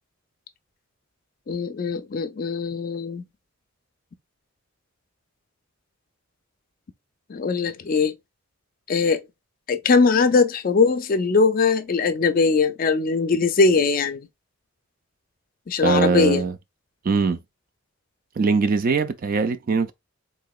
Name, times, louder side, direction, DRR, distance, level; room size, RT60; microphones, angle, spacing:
voice 1, 1.5-3.2 7.3-8.1 8.9-9.2 9.7-14.3 15.7-16.5, left 4 dB, 45° left, 0.4 m, -21 dB
voice 2, 15.8-16.5 17.0-17.4 18.4-19.9, right 4 dB, 45° right, 0.3 m, -21 dB
3.6 x 2.8 x 2.3 m
head